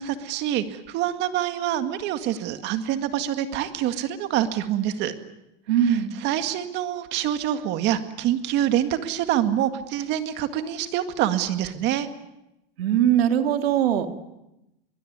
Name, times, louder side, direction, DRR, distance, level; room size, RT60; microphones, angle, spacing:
voice 1, 0.0-5.1 6.2-12.1, right 11 dB, 35° right, 9 dB, 2.0 m, -26 dB
voice 2, 5.7-6.2 12.8-14.1, right 10 dB, 80° right, 7 dB, 2.4 m, -21 dB
23.0 x 20.5 x 9.5 m, 0.90 s
supercardioid pair, 155°, 30 cm